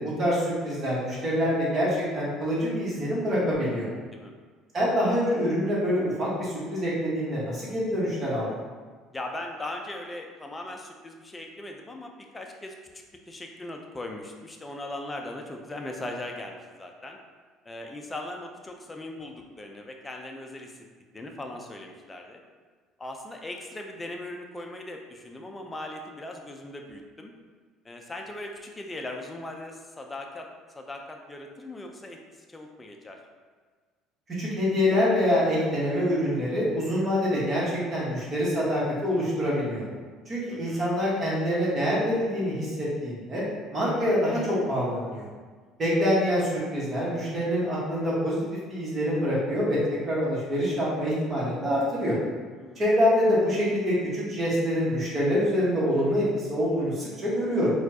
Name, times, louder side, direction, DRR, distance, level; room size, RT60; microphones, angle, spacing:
voice 1, 0.0-3.9 4.7-8.5 34.3-39.8 40.3-43.4 43.7-45.2 45.8-48.4 48.7-49.8 50.1-52.2 52.8-57.7, equal, 35° right, -7 dB, 1.3 m, -25 dB
voice 2, 9.1-17.2 17.7-20.8 21.1-22.4 23.0-27.3 27.8-30.5 30.7-32.2 32.5-33.2 40.5-40.9 52.5-52.9, left 1 dB, 15° left, 2 dB, 0.5 m, -39 dB
4.2 x 2.4 x 2.8 m, 1.5 s
supercardioid pair, 105°, 0 cm